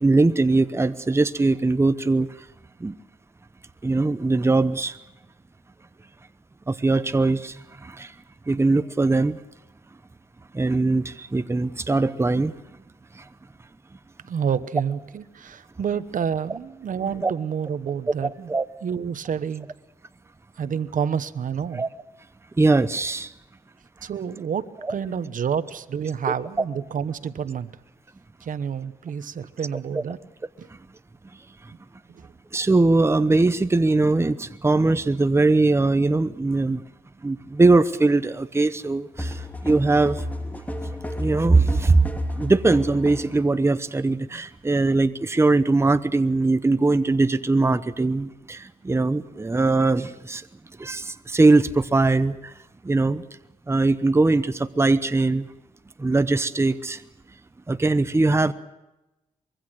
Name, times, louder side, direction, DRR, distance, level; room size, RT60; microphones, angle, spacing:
voice 1, 0.0-2.3 2.8-3.0 3.8-5.0 6.7-8.1 8.5-9.4 10.5-12.5 13.1-13.3 17.2-17.3 18.5-18.7 21.7-21.9 22.6-23.3 29.9-30.0 31.6-31.7 32.5-36.8 37.2-40.6 41.1-42.1 42.4-50.5 50.8-52.5 52.8-53.2 53.7-55.5 56.0-57.0 57.7-58.5, right 3 dB, 20° right, 12 dB, 0.9 m, -21 dB
voice 2, 14.3-18.5 18.8-19.7 20.5-21.8 24.0-27.7 28.4-30.2 30.6-30.7 32.1-32.3, right 7 dB, 70° right, 13 dB, 1.1 m, -29 dB
sound 1, 39.2-43.4, left 1 dB, 10° left, 2.9 m, -32 dB
24.5 x 22.5 x 6.5 m, 0.98 s
cardioid pair, 105°, 14 cm